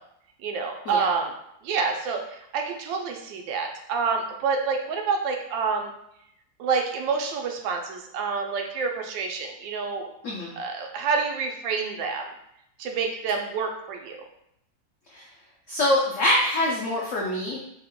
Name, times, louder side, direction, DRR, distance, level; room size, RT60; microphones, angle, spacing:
voice 1, 0.4-1.3 1.6-5.9 6.6-10.1 10.6-12.2 12.8-14.2, right 5 dB, 85° right, 3 dB, 1.3 m, -28 dB
voice 2, 15.7-17.6, left 1 dB, 90° left, -3 dB, 0.6 m, -24 dB
3.3 x 2.2 x 3.6 m, 0.76 s
omnidirectional pair, 2.0 m